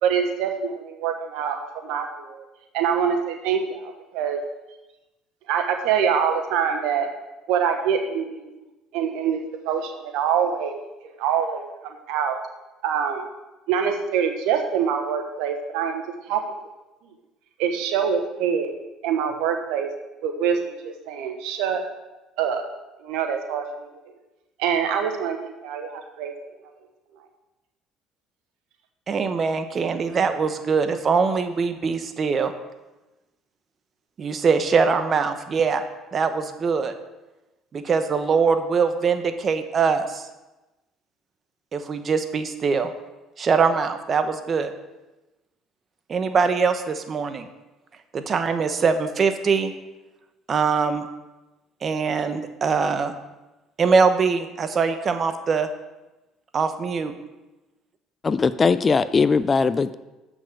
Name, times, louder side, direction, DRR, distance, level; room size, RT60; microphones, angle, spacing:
voice 1, 0.0-2.4 2.7-4.4 5.5-7.1 7.5-8.5 8.9-10.8 11.2-11.7 12.1-12.4 12.8-13.3 13.7-16.0 16.3-16.4 17.6-18.7 19.0-19.9 20.2-21.8 22.4-22.6 23.0-23.9 24.6-26.3, right 7 dB, 80° right, 5 dB, 1.2 m, -25 dB
voice 2, 29.1-32.5 34.2-35.8 36.1-36.9 37.7-40.2 41.7-42.9 43.4-44.7 46.1-47.5 48.1-49.7 50.5-51.1 51.8-53.1 53.8-55.7 56.5-57.1, right 5 dB, 40° right, 9 dB, 1.0 m, -22 dB
voice 3, 58.2-59.9, left 5 dB, 30° left, 15 dB, 0.4 m, -20 dB
7.7 x 6.2 x 6.5 m, 1.1 s
supercardioid pair, 85°, 0 cm